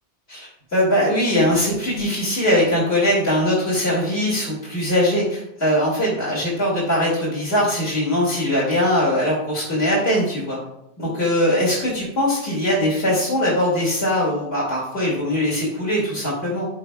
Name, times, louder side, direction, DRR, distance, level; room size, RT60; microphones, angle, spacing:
voice 1, 0.3-10.6 11.0-16.7, left 1 dB, 70° left, -7 dB, 2.3 m, -21 dB
13.5 x 4.7 x 2.2 m, 0.80 s
omnidirectional pair, 1.1 m